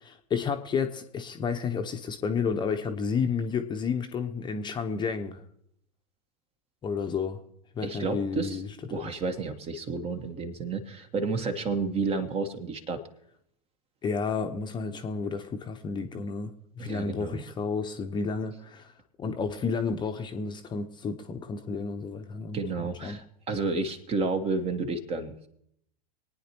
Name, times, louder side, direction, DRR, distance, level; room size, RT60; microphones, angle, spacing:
voice 1, 0.0-5.4 6.8-7.4 7.8-8.7 14.0-16.5 16.8-18.9 19.2-23.2, left 5 dB, 20° left, 6 dB, 0.9 m, -31 dB
voice 2, 7.8-8.6 8.9-13.0 16.8-17.4 22.5-25.5, right 3 dB, 30° right, 8 dB, 1.3 m, -31 dB
25.0 x 9.5 x 3.0 m, 0.74 s
figure-of-eight pair, 90°, 21 cm